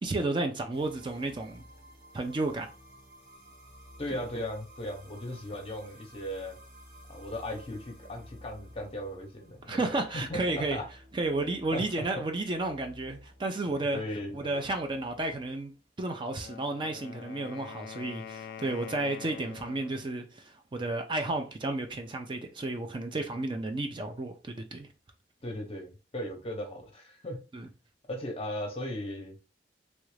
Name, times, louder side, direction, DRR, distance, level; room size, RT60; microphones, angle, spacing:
voice 1, 0.0-1.6 2.1-2.7 4.1-4.2 9.7-10.8 11.1-14.0 14.3-15.7 16.0-24.9 27.5-27.7, right 2 dB, 30° right, 0.4 m, -32 dB
sound 1, 0.7-15.9, equal, 80° right, 1.3 m, -53 dB
voice 2, 4.0-6.6 7.1-10.9 11.3-11.8 12.2-12.3 13.9-14.6 25.4-27.4 28.0-29.4, left 1 dB, 35° left, 0.7 m, -37 dB
Wind instrument woodwind instrument, 16.3-20.1, left 7 dB, 55° left, 0.3 m, -45 dB
3.1 x 2.4 x 3.2 m
head